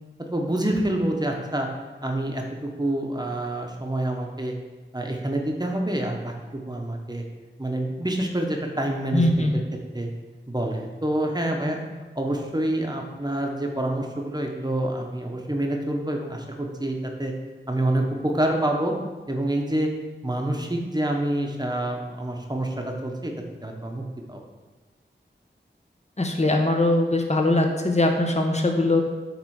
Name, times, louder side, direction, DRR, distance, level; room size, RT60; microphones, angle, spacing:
voice 1, 0.2-1.7 2.0-4.5 4.9-7.2 7.6-9.5 9.9-10.1 10.5-11.8 12.2-17.3 17.7-18.9 19.3-19.9 20.2-23.3 23.6-24.0 24.3-24.4, right 1 dB, 20° right, 1 dB, 1.0 m, -27 dB
voice 2, 9.1-9.6 26.2-29.0, left 2 dB, 35° left, 3 dB, 0.9 m, -21 dB
7.7 x 3.3 x 4.8 m, 1.2 s
wide cardioid pair, 40°, 20 cm